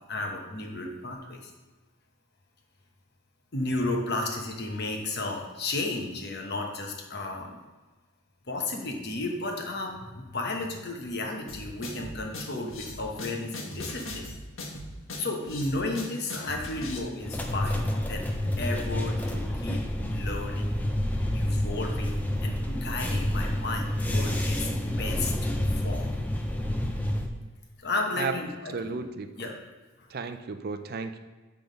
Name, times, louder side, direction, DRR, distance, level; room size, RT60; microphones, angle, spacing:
voice 1, 0.1-1.5 3.5-7.6 8.5-14.2 15.2-20.7 21.3-24.7 25.0-26.1 27.8-29.0 29.4-29.5 30.0-30.1, left 2 dB, 50° left, 2 dB, 1.1 m, -33 dB
sound 1, 11.5-17.0, left 1 dB, 75° left, 1.3 m, -39 dB
sound 2, 17.2-27.3, left 1 dB, 10° left, 0.5 m, -29 dB
voice 2, 28.7-29.5 30.1-31.2, right 4 dB, 45° right, 8 dB, 0.4 m, -34 dB
7.9 x 3.6 x 5.2 m, 1.3 s
head